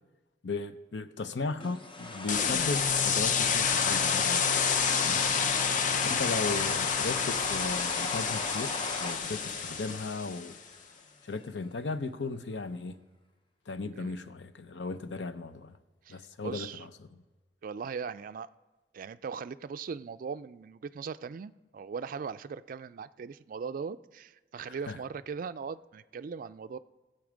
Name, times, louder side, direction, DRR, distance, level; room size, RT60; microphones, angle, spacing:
voice 1, 0.4-4.7 5.0-5.2 6.0-10.6 11.2-13.0 13.7-15.8 16.1-16.7 24.6-25.0, left 3 dB, 85° left, 0.7 m, -36 dB
sound 1, 1.6-10.8, left 2 dB, 30° left, 0.9 m, -36 dB
sound 2, 2.3-10.5, left 7 dB, 45° left, 0.6 m, -29 dB
voice 2, 5.9-6.6 14.0-14.1 16.0-16.8 17.6-18.5 18.9-26.8, right 6 dB, 50° right, 0.3 m, -39 dB
16.0 x 7.8 x 5.1 m
head